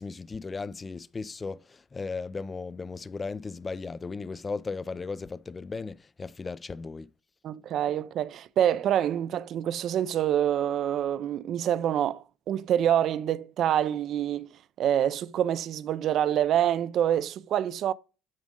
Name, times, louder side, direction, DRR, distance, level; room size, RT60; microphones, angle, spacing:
voice 1, 0.0-7.1, left 4 dB, 25° left, 0.4 m, -36 dB
voice 2, 7.4-17.9, right 10 dB, 60° right, 0.5 m, -26 dB
8.7 x 6.0 x 3.8 m
supercardioid pair, 95°, 0 cm